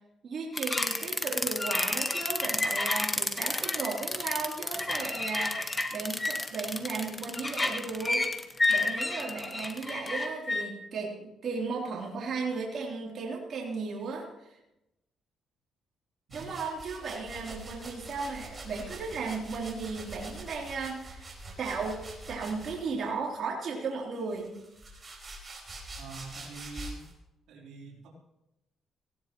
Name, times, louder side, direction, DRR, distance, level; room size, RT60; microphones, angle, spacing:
voice 1, 0.2-8.3 8.7-14.6 16.3-21.3 21.6-24.5, right 4 dB, 55° right, -3 dB, 3.2 m, -35 dB
sound 1, 0.6-10.6, left 2 dB, 20° left, 1.3 m, -30 dB
sound 2, 16.3-23.1 23.9-27.1, right 2 dB, 25° right, 4.6 m, -45 dB
voice 2, 26.0-27.1 27.5-28.1, right 3 dB, 85° right, -3 dB, 3.4 m, -44 dB
18.5 x 16.5 x 3.1 m, 0.91 s
cardioid pair, 90°, 0 cm